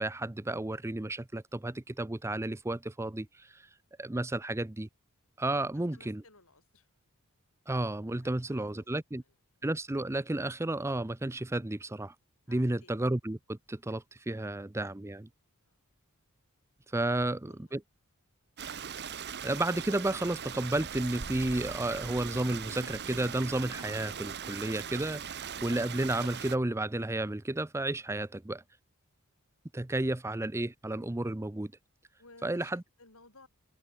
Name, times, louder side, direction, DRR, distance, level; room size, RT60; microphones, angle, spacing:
voice 1, 0.0-3.7 4.0-4.9 5.4-6.2 7.7-9.2 9.6-12.1 12.5-15.3 16.9-17.8 19.4-28.6 29.7-31.7 32.4-32.8, right 2 dB, 10° right, 0.5 m, -32 dB
voice 2, 5.6-6.9 8.2-9.3 12.5-12.9 14.4-14.5 15.6-15.8 17.0-17.2 17.5-17.7 30.0-30.1 32.2-33.5, left 3 dB, 65° left, 7.0 m, -59 dB
Stream, 18.6-26.6, right 7 dB, 50° right, 1.1 m, -40 dB
head